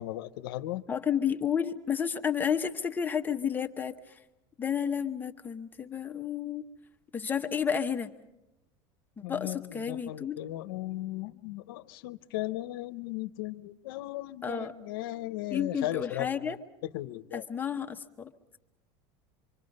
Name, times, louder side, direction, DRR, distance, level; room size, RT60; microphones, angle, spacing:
voice 1, 0.0-0.8 9.2-16.6 16.8-17.4, left 15 dB, 85° left, 0.8 m, -36 dB
voice 2, 0.9-4.2 4.6-6.6 7.1-8.1 9.3-10.4 14.4-14.7 15.5-16.6 17.3-18.3, left 7 dB, 15° left, 1.0 m, -31 dB
26.5 x 24.0 x 5.4 m
supercardioid pair, 135°, 12 cm